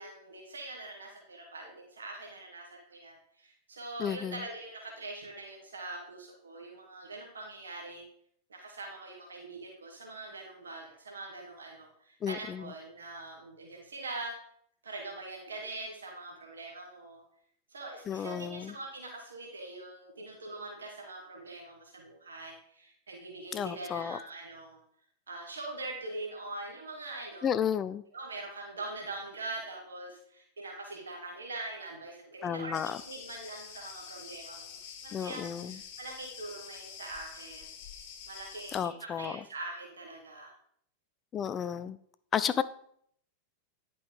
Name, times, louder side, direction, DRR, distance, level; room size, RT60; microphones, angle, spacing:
voice 1, 0.0-8.0 8.5-14.3 14.8-17.2 17.7-24.8 25.3-27.5 28.1-37.7 38.3-40.5, right 2 dB, 70° right, -1 dB, 1.9 m, -43 dB
voice 2, 4.0-4.4 12.2-12.7 18.1-18.7 23.5-24.2 27.4-28.0 32.4-33.0 35.1-35.8 38.7-39.3 41.3-42.0 42.3-42.6, left 8 dB, 25° left, 14 dB, 0.4 m, -32 dB
Cricket, 32.7-38.8, left 7 dB, 45° left, 2.2 m, -47 dB
10.5 x 5.4 x 5.0 m, 0.67 s
figure-of-eight pair, 90°, 0 cm